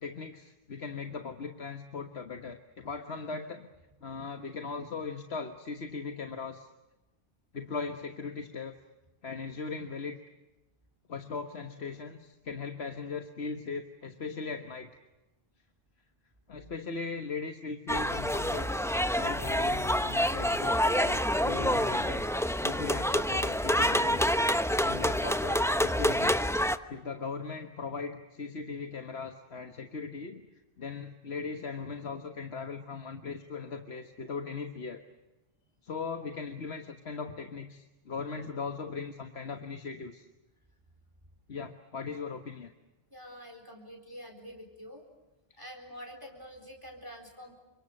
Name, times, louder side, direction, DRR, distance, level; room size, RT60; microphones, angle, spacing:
voice 1, 0.0-3.7 4.0-6.7 7.5-8.7 9.2-10.2 11.1-14.9 16.5-18.7 19.2-24.3 24.8-26.4 26.9-30.4 30.8-35.0 35.8-40.3 41.5-42.7 45.5-45.6, left 4 dB, 80° left, 6 dB, 1.7 m, -39 dB
sound 1, 17.9-26.8, equal, 5° left, 0.9 m, -27 dB
voice 2, 43.1-45.1 45.6-47.6, equal, 20° right, 3 dB, 4.3 m, -47 dB
29.5 x 26.0 x 6.6 m, 1.0 s
omnidirectional pair, 1.1 m